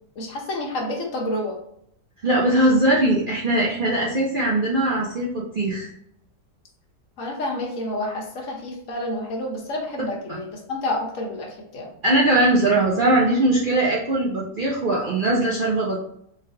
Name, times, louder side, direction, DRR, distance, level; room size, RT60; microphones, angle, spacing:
voice 1, 0.2-1.6 7.2-11.9, left 1 dB, 55° left, -1 dB, 1.2 m, -29 dB
voice 2, 2.2-5.9 10.3-10.4 12.0-16.0, right 1 dB, 70° right, -4 dB, 0.4 m, -20 dB
3.8 x 3.2 x 2.7 m, 0.71 s
omnidirectional pair, 1.7 m